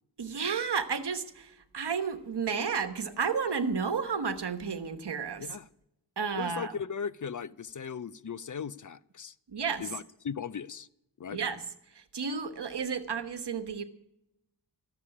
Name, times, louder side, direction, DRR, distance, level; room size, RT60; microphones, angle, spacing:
voice 1, 0.2-5.5 6.2-6.7 9.5-9.8 11.3-11.6 11.9-13.8, right 6 dB, 70° right, 1.2 m, -32 dB
voice 2, 6.4-9.3 9.8-10.9 11.2-11.4, left 7 dB, 50° left, 0.5 m, -38 dB
13.5 x 6.8 x 9.8 m
wide cardioid pair, 80°, 42 cm